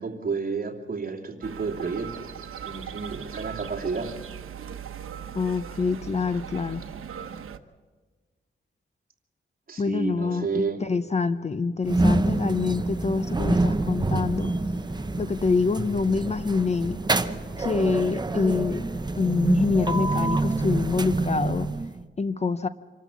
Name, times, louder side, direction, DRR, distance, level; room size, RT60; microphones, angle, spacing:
voice 1, 0.0-2.3 2.6-4.1 9.7-10.8, right 4 dB, 40° right, 1 dB, 2.8 m, -31 dB
sound 1, 1.4-7.6, right 8 dB, 90° right, 1.0 m, -39 dB
voice 2, 5.3-6.8 9.8-14.5 15.2-17.0 17.6-18.9 19.2-21.7 22.2-22.7, left 4 dB, 30° left, 12 dB, 0.6 m, -26 dB
sound 2, 11.8-22.0, right 2 dB, 20° right, 0.7 m, -27 dB
sound 3, 12.2-20.7, left 2 dB, 65° left, 3.3 m, -48 dB
26.0 x 13.0 x 8.3 m, 1.4 s
wide cardioid pair, 120°, 21 cm